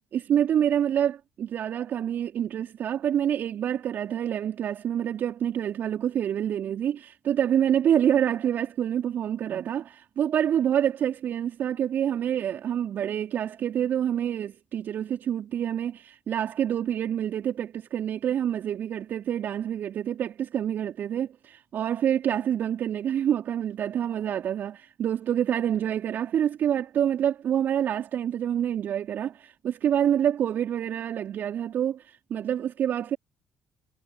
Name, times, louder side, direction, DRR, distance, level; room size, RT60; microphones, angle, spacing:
voice 1, 0.1-33.2, right 9 dB, 55° right, 4.1 m, -27 dB
hypercardioid pair, 50°, 4 cm